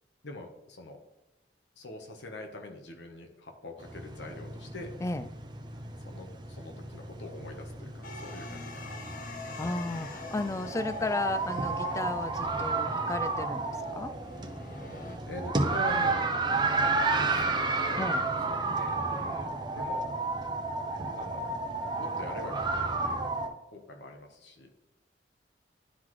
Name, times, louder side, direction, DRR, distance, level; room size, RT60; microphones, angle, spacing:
voice 1, 0.2-1.0 1.8-4.9 6.1-9.6 15.3-16.3 16.8-18.1 18.5-20.1 21.1-21.5 21.9-23.4 23.7-24.7, left 2 dB, 85° left, 3 dB, 1.1 m, -44 dB
sound 1, 3.8-23.5, right 3 dB, 25° right, 0.7 m, -32 dB
sound 2, 8.0-15.2, left 3 dB, 50° left, 0.8 m, -46 dB
voice 2, 9.6-14.1 18.0-18.3, left 2 dB, 15° left, 11 dB, 0.3 m, -34 dB
11.0 x 3.9 x 3.2 m, 0.94 s
head